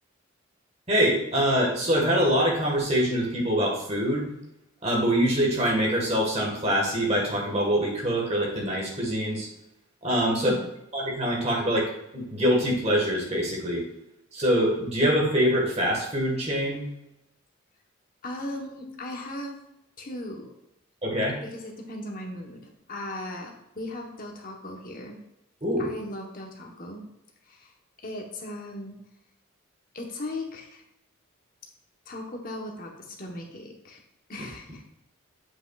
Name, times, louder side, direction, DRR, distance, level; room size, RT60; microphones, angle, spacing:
voice 1, 0.9-4.3 4.8-9.5 10.0-10.5 10.9-13.9 14.3-16.9 21.0-21.4 25.6-25.9, equal, 30° right, -1 dB, 1.5 m, -24 dB
voice 2, 10.4-10.7 18.2-19.6 20.0-20.5 21.4-25.2 25.8-27.0 27.5-27.7 28.0-29.0 29.9-30.8 32.1-34.0 34.3-34.8, left 1 dB, 40° left, 1 dB, 1.0 m, -37 dB
7.6 x 5.8 x 2.4 m, 0.83 s
head